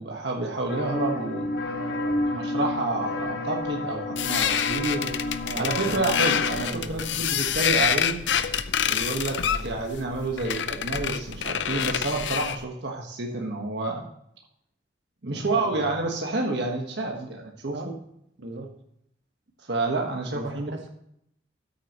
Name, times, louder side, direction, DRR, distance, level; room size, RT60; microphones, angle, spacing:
voice 1, 0.0-1.6 2.3-5.1 5.5-8.2 8.9-14.1 15.2-17.9 19.6-20.7, right 2 dB, 70° right, 0 dB, 1.5 m, -29 dB
sound 1, 0.7-6.7, left 2 dB, 60° left, 1.6 m, -30 dB
voice 2, 1.8-2.2 3.8-4.1 5.4-5.8 6.6-7.4 9.5-9.7 15.2-15.9 17.1-17.3 17.7-18.0 18.4-18.8 20.3-20.9, right 2 dB, 85° right, 3 dB, 1.8 m, -39 dB
sound 2, 4.2-12.6, left 8 dB, 80° left, 0.6 m, -27 dB
13.5 x 8.6 x 3.0 m, 0.74 s
head